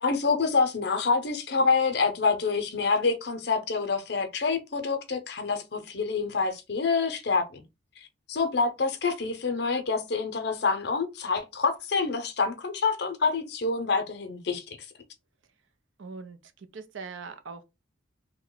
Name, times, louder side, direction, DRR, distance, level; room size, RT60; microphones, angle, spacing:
voice 1, 0.0-7.6 8.3-14.6, left 4 dB, 55° left, 0.6 m, -27 dB
voice 2, 16.0-17.6, right 4 dB, 75° right, 0.5 m, -41 dB
2.9 x 2.2 x 3.8 m
head